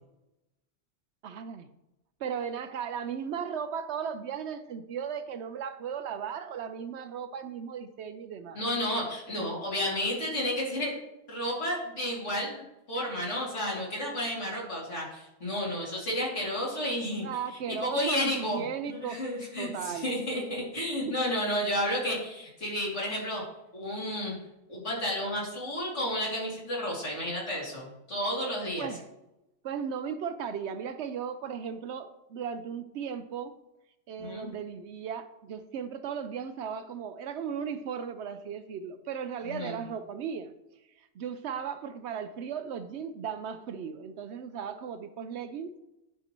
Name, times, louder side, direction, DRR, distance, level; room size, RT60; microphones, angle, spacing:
voice 1, 1.2-1.7 2.2-8.6 17.2-19.2 19.6-20.1 21.1-21.2 28.8-29.0 29.6-33.5 34.1-40.5 41.0-45.7, right 7 dB, 70° right, 10 dB, 0.8 m, -36 dB
voice 2, 8.5-11.0 11.3-17.2 17.7-23.4 23.7-24.4 24.7-28.9 34.2-34.5 39.4-39.8, left 1 dB, 70° left, -5 dB, 3.0 m, -32 dB
10.5 x 5.3 x 3.0 m, 0.93 s
omnidirectional pair, 1.2 m